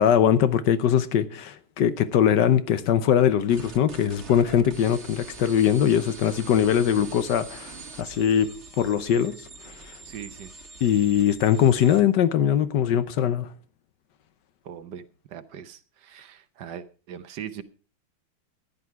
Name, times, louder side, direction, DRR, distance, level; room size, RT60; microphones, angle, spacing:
voice 1, 0.0-9.4 10.8-13.5, left 9 dB, 65° left, 1.3 m, -21 dB
sound 1, 3.5-12.1, right 4 dB, 35° right, 1.5 m, -43 dB
voice 2, 10.0-10.5 14.6-15.0 15.3-17.6, right 9 dB, 65° right, 1.3 m, -40 dB
14.0 x 10.5 x 4.6 m
omnidirectional pair, 2.2 m